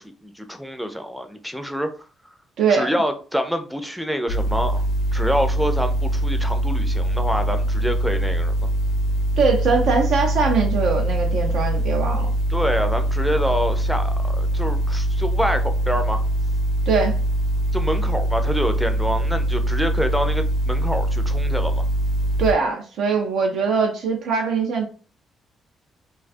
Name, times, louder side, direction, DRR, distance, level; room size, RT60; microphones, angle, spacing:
voice 1, 0.0-1.9 2.7-4.8 5.1-8.5 12.5-16.2 17.7-21.9, equal, ahead, 7 dB, 0.4 m, -26 dB
voice 2, 2.6-2.9 9.4-12.3 16.9-17.1 22.4-24.9, right 5 dB, 75° right, 1 dB, 0.4 m, -21 dB
sound 1, 4.3-22.5, right 1 dB, 80° left, 0.6 m, -22 dB
2.3 x 2.3 x 2.4 m, 0.39 s
cardioid pair, 90°, 0 cm